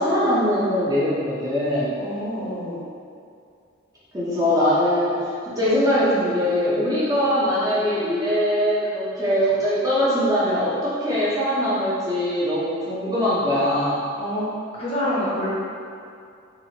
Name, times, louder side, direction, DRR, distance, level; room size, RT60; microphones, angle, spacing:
voice 1, 0.0-1.9 4.1-5.1 5.4-14.0, equal, 15° right, -9 dB, 0.5 m, -22 dB
voice 2, 2.0-2.8 14.2-14.5 14.7-15.5, equal, 30° left, -8 dB, 0.6 m, -27 dB
2.9 x 2.4 x 2.7 m, 2.4 s
head